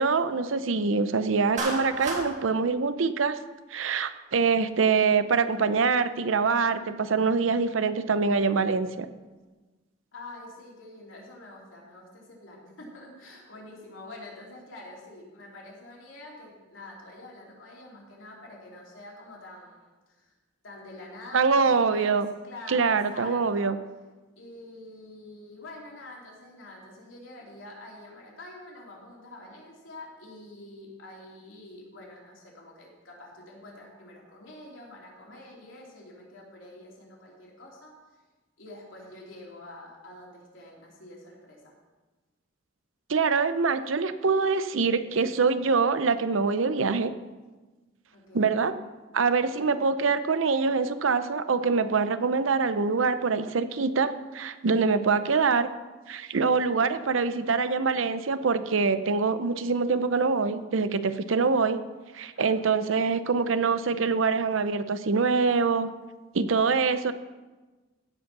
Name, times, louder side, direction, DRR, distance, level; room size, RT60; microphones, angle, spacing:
voice 1, 0.0-3.4 3.7-9.1 21.3-22.3 22.7-23.8 43.1-47.1 48.3-48.7 49.1-55.7 56.1-61.8 62.1-65.9 66.3-67.1, right 4 dB, 80° right, 12 dB, 0.6 m, -24 dB
Clapping, 1.6-2.3, right 2 dB, 40° right, 1.8 m, -31 dB
voice 2, 10.1-20.3 20.6-23.7 24.4-37.9 38.6-41.7 48.1-48.5 62.3-63.0, left 2 dB, 75° left, -3 dB, 3.1 m, -46 dB
16.0 x 5.3 x 6.0 m, 1.2 s
head